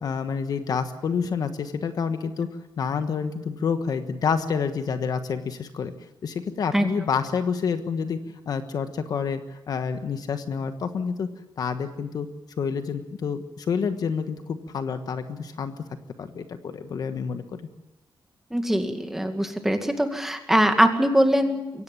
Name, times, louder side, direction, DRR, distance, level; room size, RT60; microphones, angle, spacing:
voice 1, 0.0-2.5 2.8-5.9 6.2-11.3 11.6-12.3 12.6-15.7 16.2-17.6, left 6 dB, 55° left, 9 dB, 1.4 m, -28 dB
voice 2, 18.5-21.8, equal, 5° right, 5 dB, 2.1 m, -22 dB
23.5 x 17.5 x 8.8 m, 0.97 s
wide cardioid pair, 160°, 8 cm